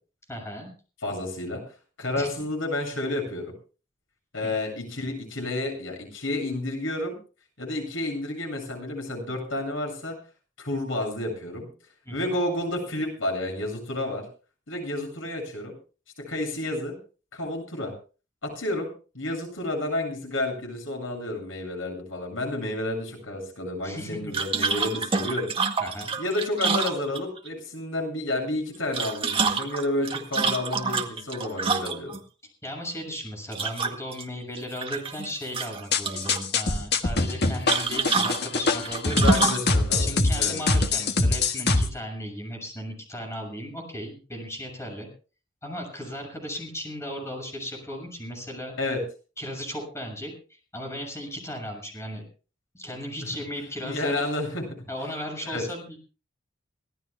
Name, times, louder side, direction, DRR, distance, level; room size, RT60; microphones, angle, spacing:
voice 1, 0.3-0.7 2.2-2.3 4.4-4.5 12.1-12.3 23.8-24.2 25.8-26.1 32.6-39.4 40.0-45.1 45.6-48.7 49.4-52.2 52.7-54.1 54.9-56.0, equal, 15° left, 2 dB, 7.0 m, -36 dB
voice 2, 1.0-1.6 2.0-3.5 4.3-7.1 7.6-10.1 10.6-11.7 12.1-14.2 14.7-15.7 16.3-17.0 17.3-17.9 18.4-18.9 19.1-25.5 26.2-32.1 39.1-40.6 48.8-49.0 53.8-54.6 55.4-55.6, left 1 dB, 85° left, 2 dB, 7.9 m, -30 dB
sound 1, 24.3-27.5 28.7-32.2 33.5-34.2 34.6-35.3 35.5-36.4 37.7-39.7, right 4 dB, 30° right, 1.9 m, -27 dB
sound 2, 35.9-41.9, left 3 dB, 60° left, 1.6 m, -23 dB
25.0 x 18.0 x 2.3 m, 0.36 s
head